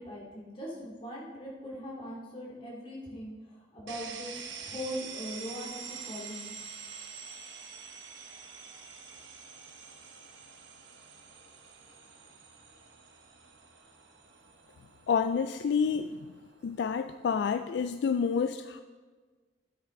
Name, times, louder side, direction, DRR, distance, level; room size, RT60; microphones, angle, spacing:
voice 1, 0.0-6.5, equal, 30° left, -5 dB, 2.5 m, -41 dB
sound 1, 3.9-17.6, right 6 dB, 85° right, 1.1 m, -47 dB
voice 2, 15.1-16.1 16.6-18.8, left 6 dB, 65° left, 10 dB, 0.3 m, -28 dB
13.0 x 7.9 x 3.8 m, 1.4 s
head